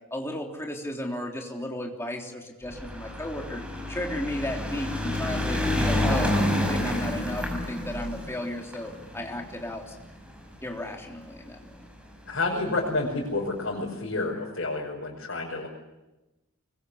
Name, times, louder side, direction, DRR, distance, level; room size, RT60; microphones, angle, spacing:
voice 1, 0.1-3.6 3.9-10.0 10.6-11.8, left 1 dB, 10° left, 0 dB, 3.5 m, -34 dB
sound 1, 2.7-11.1 12.0-12.1 12.3-12.4 12.6-12.7, left 1 dB, 5° right, 6.0 m, -29 dB
voice 2, 12.3-15.7, left 2 dB, 60° left, -3 dB, 5.4 m, -29 dB
25.0 x 22.0 x 8.5 m, 1.0 s
head